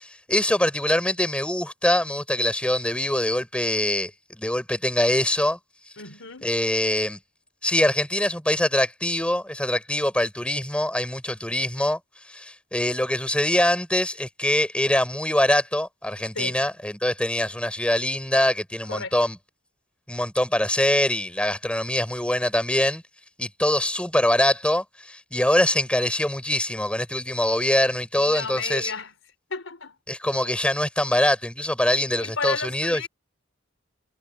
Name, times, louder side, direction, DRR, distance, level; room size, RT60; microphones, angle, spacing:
voice 1, 0.0-5.6 6.4-7.2 7.6-12.0 12.3-19.4 20.1-23.0 23.4-28.9 30.1-33.1, left 1 dB, 5° left, 4.4 m, -23 dB
voice 2, 6.0-6.5 16.3-16.6 18.9-19.1 28.1-29.1 29.5-30.0 32.2-33.1, left 4 dB, 90° left, 4.5 m, -33 dB
head